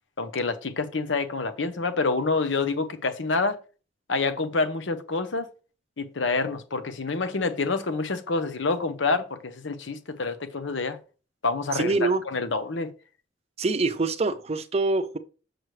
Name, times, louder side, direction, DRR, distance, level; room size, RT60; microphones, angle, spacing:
voice 1, 0.2-3.6 4.1-5.5 6.0-11.0 11.4-12.9, left 3 dB, 70° left, 0.9 m, -27 dB
voice 2, 11.7-12.2 13.6-15.2, right 3 dB, 35° right, 0.6 m, -25 dB
6.5 x 6.1 x 3.2 m
head